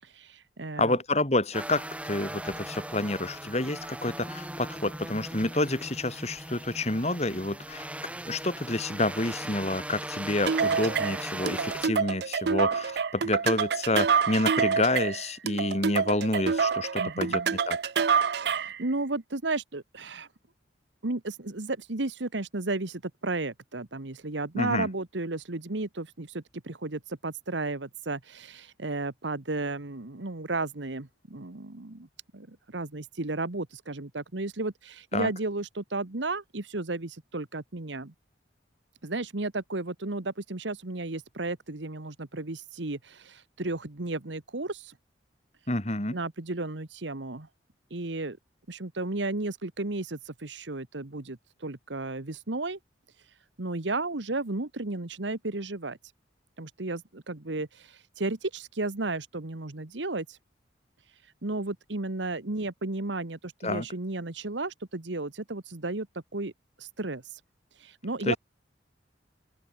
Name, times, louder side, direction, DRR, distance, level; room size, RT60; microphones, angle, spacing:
voice 1, 0.0-1.0 17.0-17.5 18.4-20.3 21.0-32.1 32.3-38.1 39.0-44.9 46.1-47.5 47.9-48.4 48.7-52.8 53.6-56.0 56.6-60.4 61.4-66.5 66.8-67.4 67.8-68.4, right 2 dB, 80° right, 1.5 m, -33 dB
voice 2, 0.8-7.9 8.2-17.8 24.5-24.9 35.1-35.3 45.7-46.2 63.6-63.8 68.2-68.4, left 2 dB, 35° left, 2.9 m, -29 dB
sound 1, 1.5-11.9, right 1 dB, 5° right, 3.8 m, -39 dB
sound 2, 10.5-18.8, right 6 dB, 60° right, 0.5 m, -27 dB
open air
head